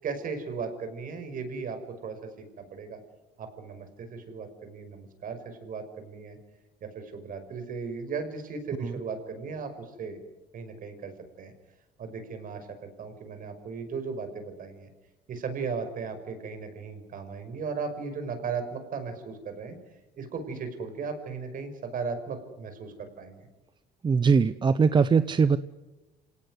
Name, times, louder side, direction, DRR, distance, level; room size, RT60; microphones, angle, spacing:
voice 1, 0.0-3.0 3.4-6.4 6.8-10.2 10.5-11.5 12.0-14.9 15.3-19.8 20.2-23.5, right 5 dB, 55° right, 8 dB, 5.7 m, -36 dB
voice 2, 24.0-25.6, right 5 dB, 25° right, 14 dB, 0.8 m, -21 dB
27.5 x 18.5 x 9.8 m, 1.1 s
cardioid pair, 110°, 17 cm